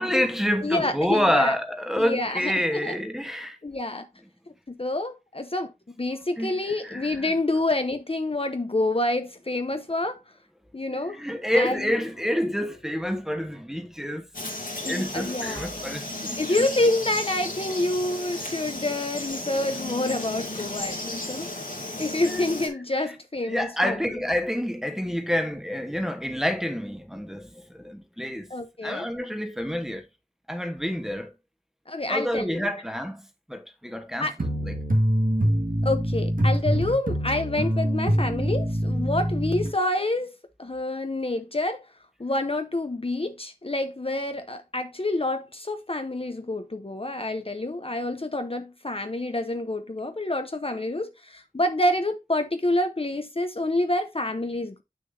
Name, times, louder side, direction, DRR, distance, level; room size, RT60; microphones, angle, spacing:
voice 1, 0.0-3.6 6.4-6.5 6.8-7.3 10.9-14.3 14.9-16.7 22.2-22.4 23.0-23.1 23.4-28.5 28.8-30.0 30.5-31.3 32.1-34.7, equal, 5° right, 1.1 m, -28 dB
voice 2, 0.6-1.5 2.0-3.0 3.6-4.1 4.7-5.7 6.0-10.2 10.7-11.2 11.5-11.9 14.8-15.7 16.4-21.5 21.8-24.0 28.5-29.1 31.9-32.7 34.2-34.3 35.8-41.8 42.2-54.8, left 2 dB, 40° left, 0.7 m, -28 dB
Frog, 14.3-22.7, left 2 dB, 75° left, 2.2 m, -34 dB
sound 1, 34.4-39.7, equal, 75° right, 1.7 m, -24 dB
7.6 x 6.4 x 2.6 m
wide cardioid pair, 40°, 14 cm